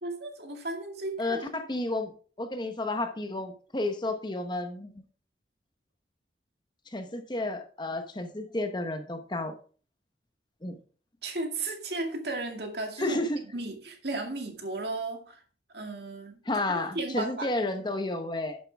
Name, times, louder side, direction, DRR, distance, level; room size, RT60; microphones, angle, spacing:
voice 1, 0.0-1.6 11.2-13.2 13.5-15.4 15.7-16.4 16.7-17.5, right 2 dB, 65° right, 3 dB, 2.2 m, -35 dB
voice 2, 1.2-2.1 2.4-5.0 6.9-9.5 10.6-10.8 13.0-13.4 16.4-18.6, left 2 dB, 25° left, 7 dB, 1.0 m, -31 dB
11.0 x 7.5 x 3.5 m, 0.40 s
head